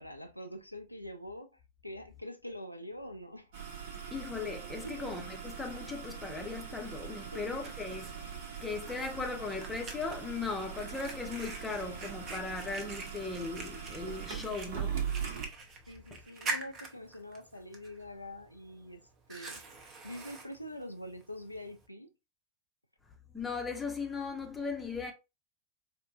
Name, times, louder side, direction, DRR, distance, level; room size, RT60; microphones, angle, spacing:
voice 1, 0.0-3.5 4.8-5.1 7.3-7.6 15.9-22.1, left 1 dB, 90° left, 0.4 m, -45 dB
sound 1, 3.5-15.5, right 7 dB, 55° right, 0.9 m, -41 dB
voice 2, 4.1-15.1 16.1-16.2 23.3-25.1, left 4 dB, 10° left, 0.7 m, -38 dB
Fire, 6.9-21.9, right 3 dB, 30° right, 0.7 m, -46 dB
4.3 x 2.2 x 2.4 m
figure-of-eight pair, 90°, 0 cm